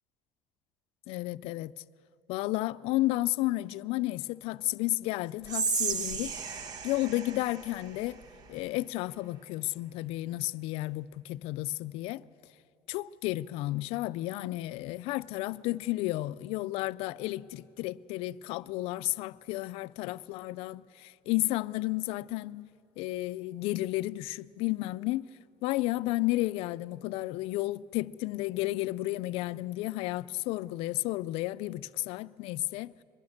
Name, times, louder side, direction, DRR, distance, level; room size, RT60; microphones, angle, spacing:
voice 1, 1.1-1.7 2.3-6.3 6.8-8.2 8.5-12.2 12.9-22.7 23.0-25.3 25.6-32.9, left 18 dB, 70° left, 0.4 m, -32 dB
Whispering, 5.4-8.7, right 6 dB, 40° right, 1.0 m, -34 dB
22.5 x 21.5 x 6.5 m
cardioid pair, 155°, 10 cm